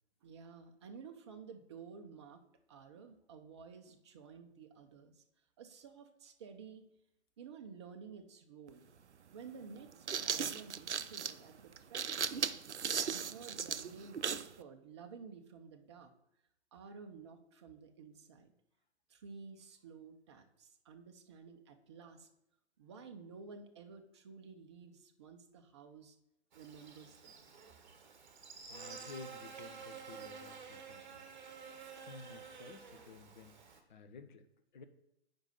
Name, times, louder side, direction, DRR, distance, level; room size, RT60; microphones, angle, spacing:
voice 1, 0.2-2.4 2.7-5.2 5.6-6.9 7.4-8.9 9.3-12.4 13.0-16.1 16.7-18.5 19.1-22.3 22.8-26.2 26.5-27.5, right 5 dB, 25° right, 6 dB, 0.6 m, -53 dB
sound 1, 8.7-8.8 9.8-14.5, right 7 dB, 80° right, 0.5 m, -37 dB
Buzz, 26.5-33.8, right 6 dB, 40° right, 1.1 m, -51 dB
voice 2, 28.7-31.4 32.0-33.6 33.9-34.5 34.7-34.8, left 4 dB, 45° left, 9 dB, 0.7 m, -53 dB
7.8 x 5.2 x 4.3 m, 0.82 s
figure-of-eight pair, 125°, 34 cm